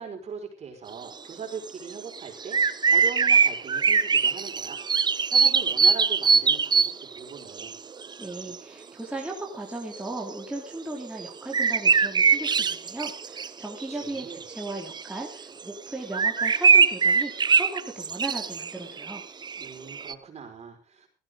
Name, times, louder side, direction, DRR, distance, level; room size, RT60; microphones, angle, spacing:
voice 1, 0.0-2.6 2.9-4.8 5.3-7.8 13.9-14.4 19.6-21.1, right 6 dB, 40° right, 2 dB, 5.1 m, -40 dB
sound 1, 1.7-1.8 2.1-7.2 7.6-7.8 8.0-8.6 9.9-10.0 11.2-15.2 15.6-15.7 16.1-20.1, right 5 dB, 25° right, 0.6 m, -22 dB
voice 2, 8.2-19.2, right 2 dB, 5° right, -2 dB, 3.2 m, -37 dB
16.0 x 15.5 x 3.8 m, 0.31 s
cardioid pair, 110°, 17 cm